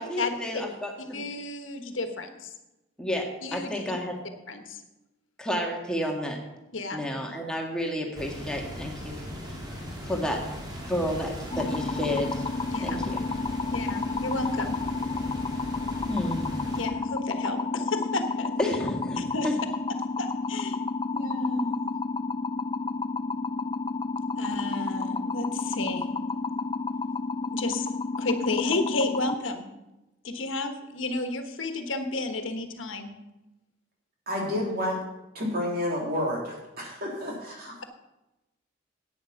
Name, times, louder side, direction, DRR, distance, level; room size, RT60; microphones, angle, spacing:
voice 1, 0.0-1.2 3.0-4.2 5.4-6.4 6.9-9.3 10.0-10.6 10.8-12.5 12.8-13.3 16.1-16.6 18.6-19.5, left 1 dB, 5° left, 0 dB, 1.7 m, -31 dB
voice 2, 1.1-2.5 3.4-3.7 4.5-4.8 6.7-7.0 12.7-13.0 13.7-14.8 16.7-18.5 19.2-19.5 20.2-20.8 21.1-21.8 24.3-26.1 27.4-27.9 28.2-29.6 30.2-33.1, left 2 dB, 85° left, 7 dB, 1.3 m, -32 dB
sound 1, 8.1-16.9, equal, 20° right, 2.2 m, -38 dB
sound 2, 11.5-29.3, left 3 dB, 25° left, 0.4 m, -31 dB
voice 3, 34.3-35.0 35.3-37.9, left 1 dB, 50° right, -2 dB, 3.4 m, -30 dB
10.5 x 8.9 x 5.7 m, 0.99 s
head